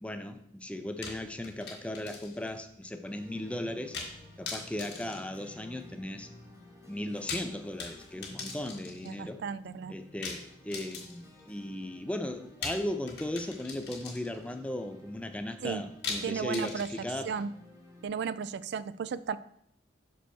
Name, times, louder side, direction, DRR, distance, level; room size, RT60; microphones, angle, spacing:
voice 1, 0.0-4.0 4.4-6.3 6.9-9.4 9.9-17.3, left 1 dB, 5° left, 8 dB, 0.4 m, -37 dB
sound 1, 1.0-2.5 2.8-2.9 3.9-4.2 4.5-6.0 7.0-9.2 10.2-11.4 12.6-14.5 16.0-17.4, left 4 dB, 55° left, 1.5 m, -41 dB
sound 2, 3.1-18.1, left 1 dB, 15° right, 1.9 m, -54 dB
voice 2, 9.0-9.9 15.6-15.8 16.2-16.9 17.2-17.5 18.0-19.4, right 6 dB, 60° right, 16 dB, 0.3 m, -34 dB
6.3 x 5.5 x 4.4 m, 0.71 s
head